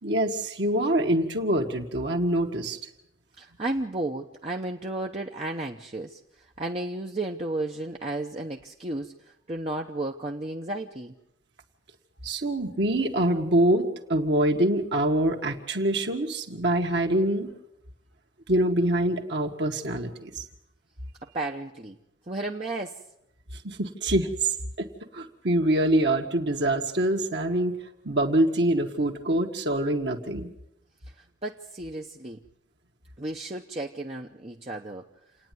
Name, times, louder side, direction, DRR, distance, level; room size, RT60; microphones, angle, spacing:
voice 1, 0.0-2.8 12.2-17.5 18.5-20.4 23.6-24.5 24.8-24.9 25.1-27.7 28.0-30.5, right 1 dB, 60° right, 2 dB, 1.9 m, -25 dB
voice 2, 3.4-11.1 21.2-22.0 22.3-23.0 31.2-32.4 33.2-35.1, right 2 dB, 30° right, 1 dB, 0.9 m, -33 dB
29.0 x 9.7 x 9.4 m, 0.84 s
head